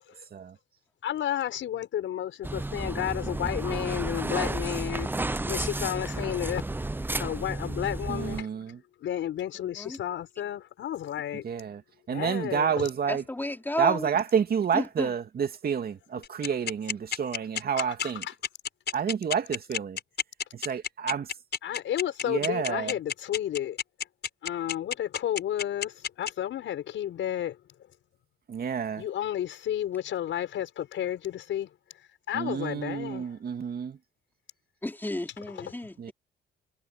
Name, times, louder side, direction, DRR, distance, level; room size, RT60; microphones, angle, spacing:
voice 1, 1.0-5.1 5.5-6.6 7.2-8.5 9.0-11.4 12.1-12.9 16.4-16.5 17.8-18.3 21.6-23.8 24.4-27.6 29.0-31.7 32.3-33.2 35.6-35.7, left 11 dB, 75° left, 6.3 m, -32 dB
sound 1, 2.4-8.4, right 2 dB, 10° right, 0.7 m, -32 dB
voice 2, 8.1-8.8 11.4-11.8 12.1-13.2 13.8-18.2 18.9-20.0 20.5-21.3 22.2-22.9 28.5-29.0 32.3-34.0 36.0-36.1, right 7 dB, 50° right, 2.5 m, -29 dB
voice 3, 13.1-14.1 14.7-15.1 34.8-36.1, left 1 dB, 10° left, 4.1 m, -33 dB
sound 2, 16.2-26.3, left 8 dB, 55° left, 5.5 m, -30 dB
cardioid pair, 90°, 20 cm